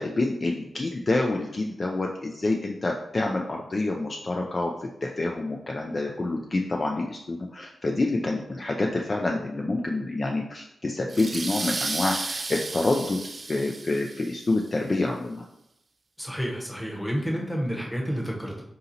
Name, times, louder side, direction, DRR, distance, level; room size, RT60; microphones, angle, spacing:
voice 1, 0.0-13.2 13.5-15.4, left 2 dB, 35° left, 1 dB, 0.4 m, -27 dB
sound 1, 11.1-14.5, right 3 dB, 40° right, 0.4 m, -33 dB
voice 2, 16.2-18.6, equal, 5° left, -1 dB, 0.9 m, -30 dB
3.9 x 2.8 x 3.9 m, 0.84 s
wide cardioid pair, 105°, 0 cm